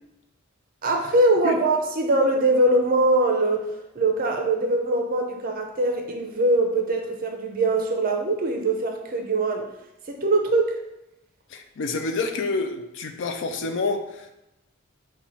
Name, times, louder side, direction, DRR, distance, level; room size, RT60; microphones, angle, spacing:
voice 1, 0.8-3.6 4.0-9.6 10.1-10.7, right 2 dB, 45° right, 4 dB, 0.6 m, -22 dB
voice 2, 11.5-14.3, left 3 dB, 60° left, 6 dB, 0.4 m, -28 dB
4.2 x 2.3 x 4.3 m, 0.90 s
head